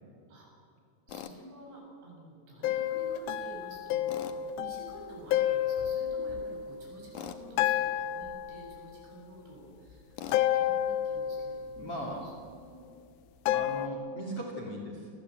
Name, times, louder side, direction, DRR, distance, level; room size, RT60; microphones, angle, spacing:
Tools, 1.1-1.3 4.1-4.4 7.1-7.4 10.2-10.5, left 9 dB, 70° left, 1.9 m, -41 dB
voice 1, 1.1-11.8 12.2-12.9 13.5-13.7, right 1 dB, 70° right, -2 dB, 10.0 m, -50 dB
sound 1, 2.6-7.2 7.6-9.2 10.3-12.3 13.5-13.9, left 11 dB, 85° left, 3.4 m, -31 dB
voice 2, 11.8-12.3 13.5-15.1, equal, 35° left, 0 dB, 3.3 m, -38 dB
28.5 x 20.5 x 8.2 m, 2.4 s
omnidirectional pair, 5.4 m